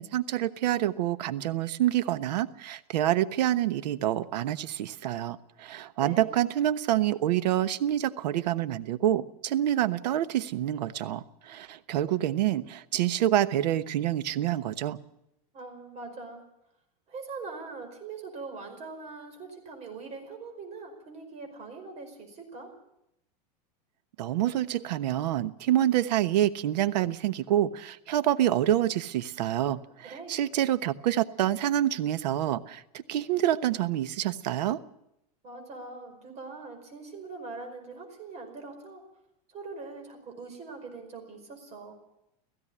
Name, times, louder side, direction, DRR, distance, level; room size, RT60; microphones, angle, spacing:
voice 1, 0.0-15.0 24.2-34.8, right 12 dB, 85° right, 13 dB, 1.2 m, -27 dB
voice 2, 6.0-6.3 15.5-16.4 17.1-22.7 30.1-30.4 35.4-39.0 39.5-41.9, right 4 dB, 35° right, 5 dB, 5.1 m, -42 dB
17.0 x 15.5 x 9.9 m, 0.83 s
supercardioid pair, 150°, 21 cm